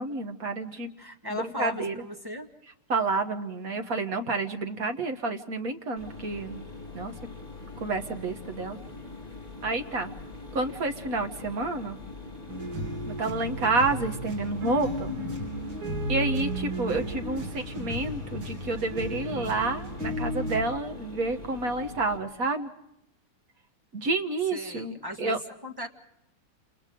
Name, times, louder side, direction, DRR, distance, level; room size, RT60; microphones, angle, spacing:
voice 1, 0.0-0.9 1.3-1.9 2.9-6.6 6.9-7.1 7.8-8.8 9.6-10.1 10.5-12.0 13.1-15.1 16.1-22.7 23.9-25.4, right 3 dB, 45° right, 6 dB, 1.7 m, -29 dB
voice 2, 1.0-2.5 24.5-25.9, left 2 dB, 10° right, 3 dB, 1.5 m, -37 dB
Mechanisms, 6.0-22.2, left 3 dB, 15° left, 4.5 m, -43 dB
sound 1, 12.5-20.6, equal, 65° right, 4.3 m, -34 dB
29.0 x 29.0 x 3.8 m, 0.80 s
omnidirectional pair, 2.4 m